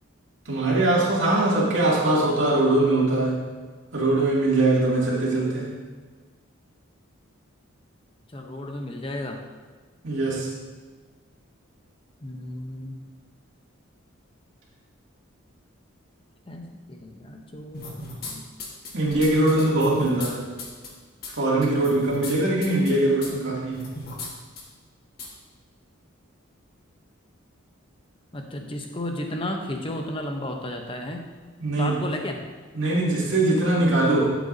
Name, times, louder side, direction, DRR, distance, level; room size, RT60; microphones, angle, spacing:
voice 1, 0.4-3.4 3.9-5.7 10.0-10.5 18.9-20.4 21.4-23.9 31.6-32.0 32.7-34.3, right 2 dB, 60° right, -5 dB, 2.6 m, -22 dB
voice 2, 8.3-9.4 12.2-13.0 16.5-18.4 28.3-31.3 31.8-32.4, left 1 dB, 25° left, 3 dB, 0.8 m, -33 dB
sound 1, 17.7-18.3 18.6-20.3 20.6-20.9 21.2-21.3 21.6-22.3 22.6-22.9 23.2-23.3 23.7-24.3 24.6-24.7 25.2-25.3, left 2 dB, 45° left, 1.5 m, -36 dB
12.0 x 8.1 x 2.7 m, 1.4 s
head